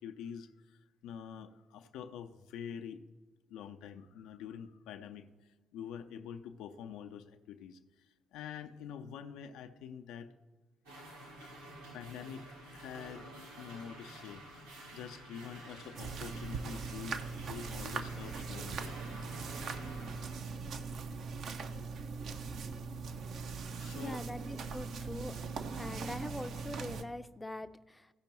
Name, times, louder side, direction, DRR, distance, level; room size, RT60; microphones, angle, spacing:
voice 1, 0.0-3.0 3.5-5.3 5.7-7.8 8.3-10.3 11.9-12.4 12.7-19.0 23.8-24.2 25.8-25.9, left 8 dB, 65° left, 7 dB, 0.5 m, -46 dB
sound 1, 10.9-20.4, right 1 dB, 85° right, 1.9 m, -50 dB
sound 2, 15.9-27.0, right 4 dB, 55° right, 0.6 m, -40 dB
voice 2, 23.9-25.4 25.8-28.1, left 1 dB, 10° left, 11 dB, 0.5 m, -43 dB
15.0 x 5.2 x 4.4 m, 1.3 s
figure-of-eight pair, 45°, 0 cm